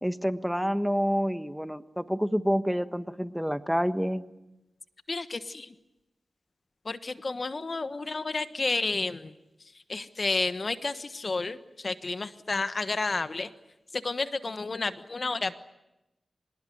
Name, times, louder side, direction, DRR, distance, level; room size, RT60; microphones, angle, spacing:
voice 1, 0.0-4.2, equal, ahead, 11 dB, 1.3 m, -28 dB
voice 2, 5.1-5.7 6.8-9.3 9.9-13.5 13.9-15.5, left 3 dB, 55° left, 11 dB, 1.3 m, -31 dB
25.5 x 20.5 x 9.4 m, 0.97 s
cardioid pair, 45°, 0 cm